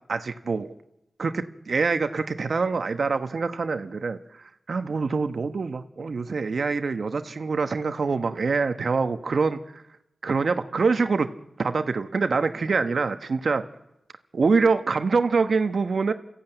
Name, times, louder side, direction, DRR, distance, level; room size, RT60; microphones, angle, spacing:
voice 1, 0.1-0.7 1.2-4.2 4.7-9.6 10.2-11.3 11.6-13.6 14.3-16.1, right 4 dB, 65° right, 9 dB, 1.2 m, -25 dB
29.0 x 14.5 x 9.1 m, 0.92 s
wide cardioid pair, 70°, 0 cm